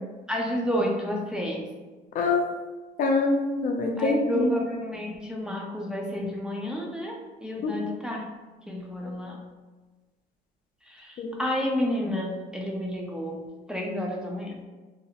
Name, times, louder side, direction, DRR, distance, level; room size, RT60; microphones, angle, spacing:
voice 1, 0.3-1.6 4.0-7.1 7.4-8.3 8.7-9.5 10.9-14.6, equal, 5° right, -2 dB, 0.4 m, -30 dB
voice 2, 2.1-2.5 3.0-4.5 7.6-7.7 11.2-11.4, left 3 dB, 55° left, 2 dB, 0.5 m, -25 dB
2.7 x 2.0 x 2.8 m, 1.3 s
cardioid pair, 110°, 17 cm